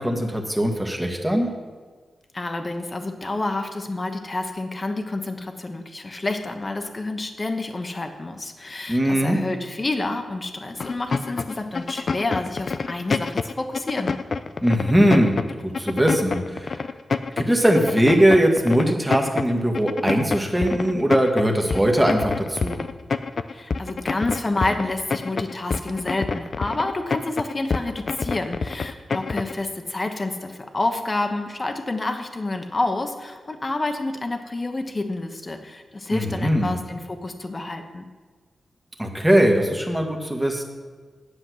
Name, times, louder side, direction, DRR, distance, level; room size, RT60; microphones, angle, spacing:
voice 1, 0.0-1.5 8.9-9.4 14.6-15.4 15.8-16.8 17.4-22.8 36.1-36.8 39.0-40.6, equal, 5° right, 1 dB, 1.7 m, -20 dB
voice 2, 2.3-14.1 23.5-38.0, left 2 dB, 30° left, 5 dB, 1.2 m, -29 dB
sound 1, 10.8-29.6, left 4 dB, 55° left, 0.4 m, -27 dB
10.0 x 7.6 x 6.3 m, 1.4 s
wide cardioid pair, 95°, 0 cm